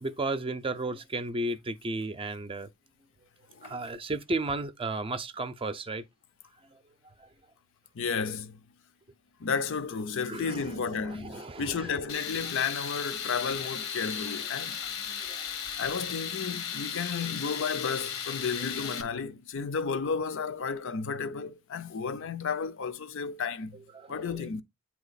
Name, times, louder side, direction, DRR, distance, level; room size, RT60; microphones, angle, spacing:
voice 1, 0.0-2.7 3.6-6.0 10.3-12.0 15.1-15.4 23.9-24.3, right 2 dB, 25° right, 0.5 m, -34 dB
voice 2, 7.9-8.6 9.4-14.9 15.8-23.8 24.1-24.6, left 5 dB, 65° left, 0.5 m, -32 dB
Tools, 12.1-19.0, left 8 dB, 80° left, 1.0 m, -36 dB
8.7 x 2.9 x 4.0 m
head